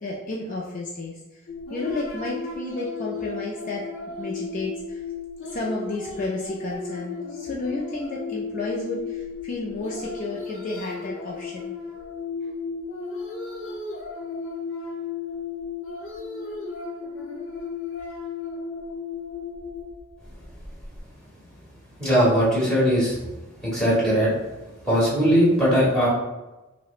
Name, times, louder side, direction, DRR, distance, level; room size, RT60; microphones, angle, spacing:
voice 1, 0.0-1.2 1.7-3.8 4.2-5.0 5.4-11.7, left 2 dB, 40° left, -4 dB, 0.4 m, -31 dB
sound 1, 1.5-21.0, left 4 dB, 85° left, 0.8 m, -35 dB
voice 2, 22.0-23.2 23.6-24.3 24.8-26.1, equal, 5° left, -8 dB, 1.4 m, -19 dB
5.7 x 2.1 x 2.4 m, 1.1 s
head